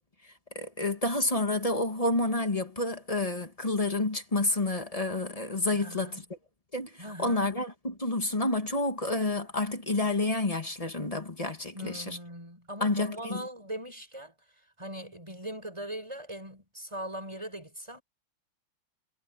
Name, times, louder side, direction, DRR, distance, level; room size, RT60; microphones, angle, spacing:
voice 1, 0.5-6.2 6.7-12.2 12.8-13.4, left 2 dB, 20° left, 1.4 m, -29 dB
voice 2, 5.7-6.2 7.0-7.5 11.7-18.0, right 1 dB, 10° right, 7.8 m, -41 dB
omnidirectional pair, 2.4 m